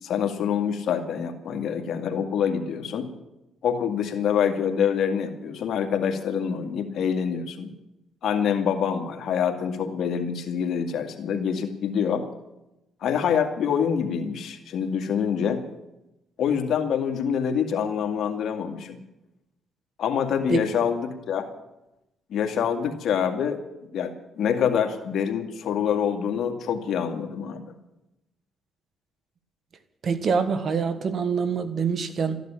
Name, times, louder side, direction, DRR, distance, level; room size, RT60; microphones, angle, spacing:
voice 1, 0.0-3.1 3.6-7.7 8.2-12.2 13.0-15.6 16.4-19.0 20.0-21.5 22.3-23.6 23.9-27.6, left 7 dB, 70° left, 4 dB, 2.2 m, -26 dB
voice 2, 30.0-32.4, right 5 dB, 55° right, 11 dB, 1.5 m, -25 dB
14.5 x 11.0 x 8.8 m, 0.92 s
cardioid pair, 90°, 0 cm